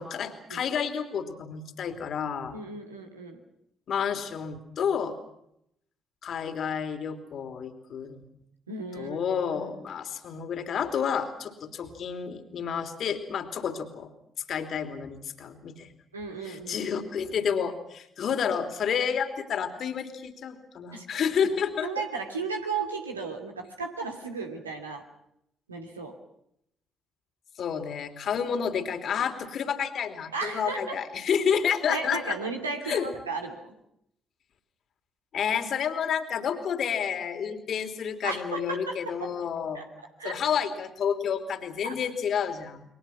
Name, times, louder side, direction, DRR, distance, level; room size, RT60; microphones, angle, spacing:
voice 1, 0.0-2.6 3.9-5.2 6.2-8.2 9.0-14.1 14.5-15.9 16.4-22.0 27.6-32.4 32.9-33.1 35.3-39.8 40.2-42.8, left 7 dB, 55° left, 8 dB, 3.1 m, -30 dB
voice 2, 2.5-3.4 8.7-9.2 9.5-9.7 16.1-16.8 20.9-21.3 21.8-25.0 25.7-26.1 30.3-31.0 31.9-33.7 38.2-39.3 39.7-39.9 40.2-40.4 41.8-41.9, right 4 dB, 90° right, 2 dB, 2.8 m, -35 dB
29.0 x 23.5 x 6.0 m, 0.76 s
figure-of-eight pair, 45°, 0 cm